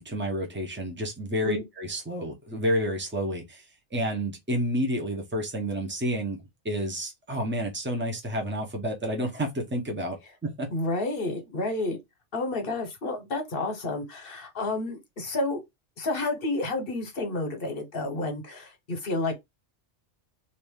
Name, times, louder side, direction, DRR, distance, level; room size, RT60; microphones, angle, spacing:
voice 1, 0.0-3.6 3.9-10.7, equal, 10° right, 0.7 m, -30 dB
voice 2, 10.7-12.0 12.3-15.6 16.0-19.4, left 2 dB, 50° left, 1.2 m, -30 dB
2.8 x 2.6 x 3.5 m
omnidirectional pair, 1.2 m